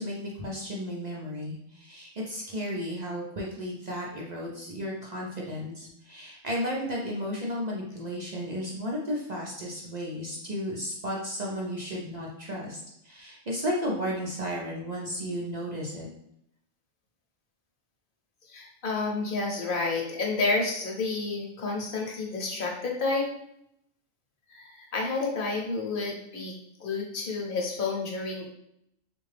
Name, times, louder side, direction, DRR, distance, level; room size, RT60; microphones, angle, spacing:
voice 1, 0.0-12.8 13.0-16.1, equal, 45° right, -3 dB, 0.5 m, -34 dB
voice 2, 18.5-23.3 24.5-26.5 26.8-28.5, left 3 dB, 50° left, 0 dB, 0.9 m, -30 dB
3.6 x 2.6 x 3.3 m, 0.74 s
omnidirectional pair, 1.4 m